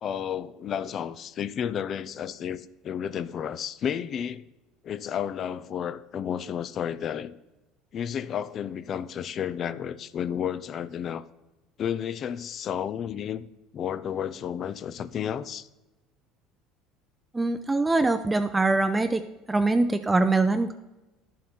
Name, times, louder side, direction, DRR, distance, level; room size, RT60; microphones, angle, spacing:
voice 1, 0.0-4.5 4.8-7.3 7.9-11.2 11.8-13.4 13.7-15.7, left 9 dB, 45° left, 0.5 m, -32 dB
voice 2, 17.3-19.2 19.5-20.7, right 3 dB, 15° right, 0.5 m, -23 dB
11.5 x 7.4 x 4.3 m
supercardioid pair, 110°, 0 cm